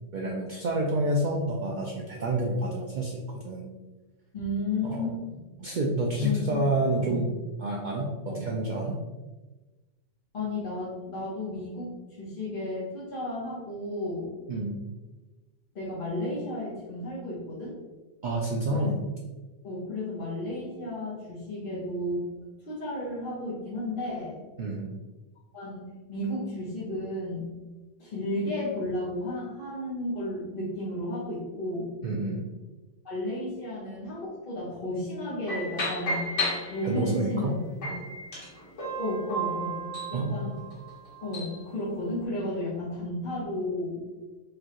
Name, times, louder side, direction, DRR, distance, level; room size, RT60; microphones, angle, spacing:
voice 1, 0.1-3.6 4.8-5.1 5.6-7.3 7.6-9.0 14.5-14.8 18.2-19.0 24.6-24.9 32.0-32.5 36.8-37.5 40.1-40.4, right 1 dB, 60° right, -2 dB, 0.5 m, -28 dB
voice 2, 4.3-5.4 6.2-6.7 7.0-7.1 8.3-8.4 10.3-11.9 12.2-14.3 15.7-17.7 18.7-18.9 19.6-22.3 22.7-24.4 25.5-27.5 28.0-31.9 33.0-36.3 36.7-37.6 39.0-40.6 41.2-44.1, left 1 dB, 45° left, -9 dB, 1.1 m, -33 dB
sound 1, 35.5-37.2 37.8-41.6, equal, 80° left, 1.4 m, -33 dB
4.9 x 2.3 x 2.9 m, 1.2 s
omnidirectional pair, 1.2 m